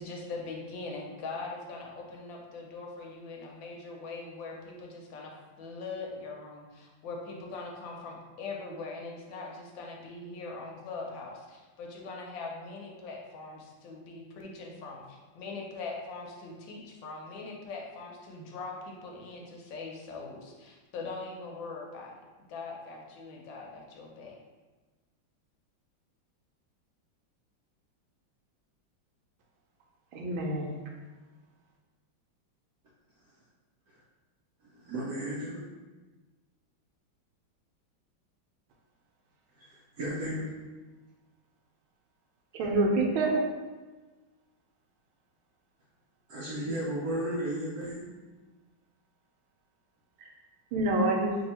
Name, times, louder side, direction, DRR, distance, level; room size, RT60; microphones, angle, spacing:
voice 1, 0.0-22.1 22.5-24.4, left 3 dB, 75° left, 0 dB, 1.3 m, -41 dB
voice 2, 30.1-30.8 42.5-43.4 50.2-50.3 50.7-51.4, right 2 dB, 90° right, 1 dB, 1.5 m, -27 dB
voice 3, 34.8-35.6 39.6-39.7 40.0-40.5 46.3-48.1, right 1 dB, 70° right, -5 dB, 0.9 m, -33 dB
3.2 x 2.7 x 4.2 m, 1.3 s
omnidirectional pair, 2.2 m